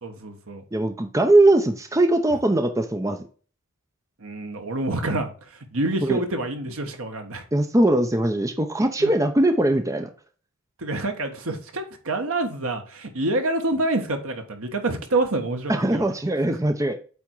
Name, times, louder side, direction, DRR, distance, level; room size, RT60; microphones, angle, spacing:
voice 1, 0.0-0.6 4.2-7.4 9.0-9.1 10.8-16.0 16.5-16.6, right 2 dB, 70° right, 1.4 m, -27 dB
voice 2, 0.7-3.2 6.0-6.2 7.5-10.1 15.7-16.9, right 1 dB, 15° right, 0.6 m, -20 dB
8.4 x 3.5 x 4.6 m
head